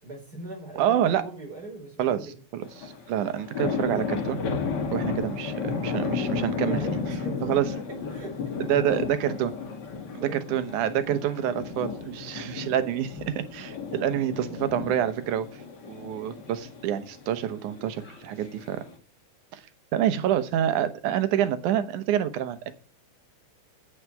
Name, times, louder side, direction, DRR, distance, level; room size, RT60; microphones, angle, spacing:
voice 1, 0.0-2.3 2.7-2.8 6.4-7.6 8.1-8.7 10.0-10.6 14.3-14.8, right 2 dB, 30° right, 1 dB, 5.2 m, -41 dB
voice 2, 0.8-1.2 2.0-4.4 4.9-6.8 7.4-7.7 8.7-9.5 10.1-15.5 15.9-18.8 19.5-19.6 19.9-22.7, right 10 dB, 85° right, 11 dB, 2.5 m, -27 dB
sound 1, 2.6-18.9, left 5 dB, 40° left, 1.9 m, -33 dB
8.6 x 8.1 x 9.0 m, 0.40 s
omnidirectional pair, 3.4 m